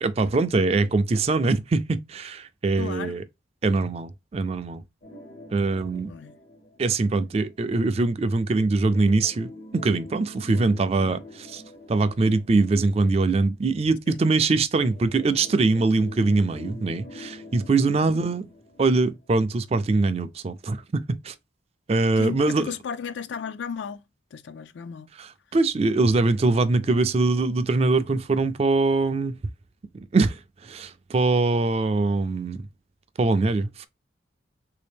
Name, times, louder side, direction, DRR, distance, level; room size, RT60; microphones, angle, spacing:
voice 1, 0.0-3.2 3.6-4.8 5.5-6.1 6.8-11.6 11.9-18.5 18.8-21.4 21.9-22.6 25.2-29.4 30.1-32.7 33.2-33.9, right 3 dB, 30° right, 0.3 m, -23 dB
voice 2, 2.8-3.2 6.1-6.3 14.1-14.2 18.0-18.1 22.2-24.0 24.3-25.1, left 6 dB, 70° left, 0.4 m, -35 dB
sound 1, 5.0-7.7 9.2-13.5 14.8-19.7 20.0-20.1 20.7-20.8, left 1 dB, 50° left, 0.8 m, -45 dB
3.4 x 2.7 x 3.4 m
head